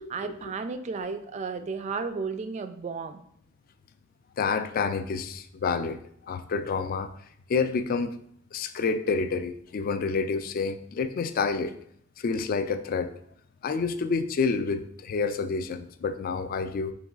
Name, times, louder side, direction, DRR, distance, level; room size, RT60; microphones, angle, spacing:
voice 1, 0.0-3.2, right 4 dB, 35° right, 9 dB, 0.3 m, -33 dB
voice 2, 4.4-6.0 6.3-7.1 7.5-8.2 8.5-11.8 12.2-13.1 13.6-16.9, left 4 dB, 45° left, 10 dB, 0.3 m, -28 dB
4.0 x 3.0 x 3.6 m, 0.67 s
head